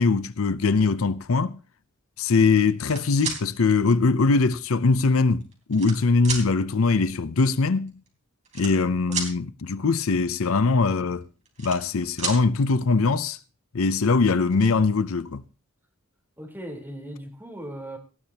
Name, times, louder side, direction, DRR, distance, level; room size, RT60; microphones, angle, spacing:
voice 1, 0.0-1.6 2.2-7.9 8.6-11.2 11.6-13.4 13.7-15.4, left 4 dB, 80° left, 0.6 m, -22 dB
sound 1, 2.6-3.4 4.4-4.5 5.3-6.0 6.2-6.4 7.6-7.7 7.9-8.1 8.4-9.3 11.2-11.9 12.2-12.4 13.9-14.0 14.3-14.7, right 5 dB, 35° right, 3.7 m, -32 dB
voice 2, 8.8-9.2 16.4-18.0, right 1 dB, 10° right, 3.8 m, -38 dB
18.5 x 14.5 x 2.9 m
head